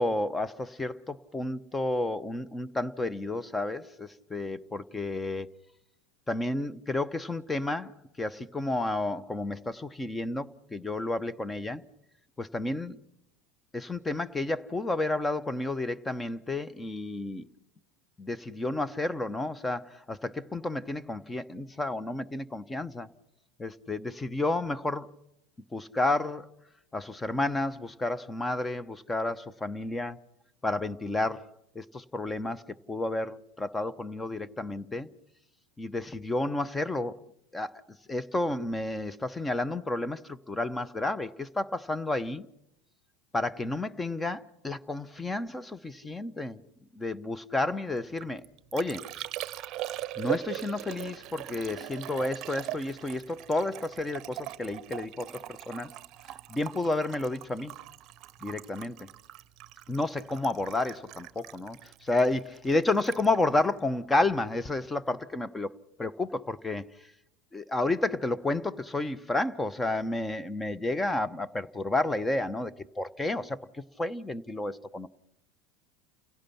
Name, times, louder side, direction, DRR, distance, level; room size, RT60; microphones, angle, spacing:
voice 1, 0.0-5.5 6.3-7.9 8.2-11.8 12.4-13.0 13.7-17.5 18.2-23.1 23.6-25.1 25.7-26.5 26.9-30.2 30.6-35.1 35.8-37.2 37.5-37.7 38.1-42.5 43.3-46.6 46.9-48.4 48.7-49.1 50.2-55.9 56.5-57.8 58.4-59.1 59.9-65.7 66.0-66.9 67.5-75.1, left 2 dB, 15° left, 0.9 m, -31 dB
Liquid, 48.0-64.6 64.8-65.4, right 14 dB, 50° right, 0.7 m, -41 dB
30.0 x 17.0 x 5.8 m
hypercardioid pair, 80°, 0 cm